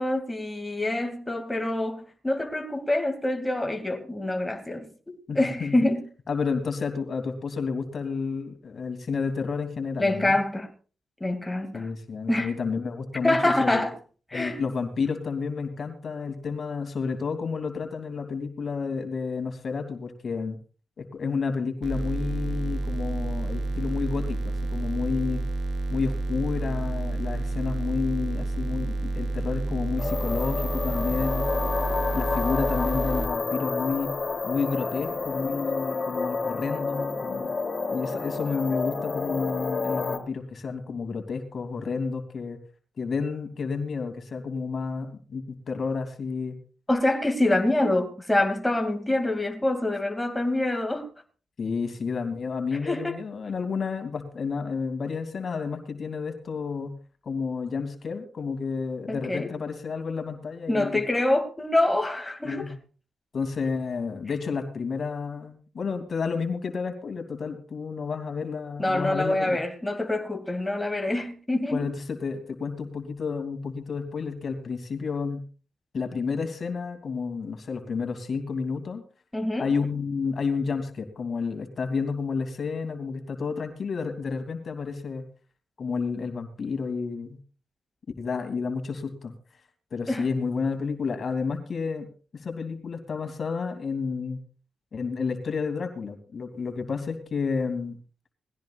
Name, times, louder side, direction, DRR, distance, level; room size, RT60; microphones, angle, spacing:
voice 1, 0.0-6.0 10.0-10.7 11.2-11.9 12.3-12.6 13.2-13.9 14.3-14.6 46.9-51.1 52.7-53.2 59.1-59.5 60.7-62.7 68.8-71.8 79.3-79.7 90.1-90.3, left 1 dB, 10° left, 2.5 m, -26 dB
voice 2, 5.3-5.8 6.3-10.4 11.7-13.9 14.3-20.6 21.0-25.4 25.9-31.5 32.1-34.1 34.4-37.5 37.9-42.6 43.0-46.6 51.6-56.9 57.2-61.0 62.4-62.7 63.3-69.6 71.7-75.4 75.9-79.0 79.6-85.3 85.8-87.4 88.2-89.3 89.9-94.4 94.9-98.0, left 5 dB, 55° left, 2.9 m, -30 dB
sound 1, 21.8-33.3, right 2 dB, 70° right, 2.8 m, -29 dB
sound 2, 30.0-40.2, left 4 dB, 40° left, 2.9 m, -29 dB
20.0 x 16.0 x 2.5 m
cardioid pair, 75°, 0 cm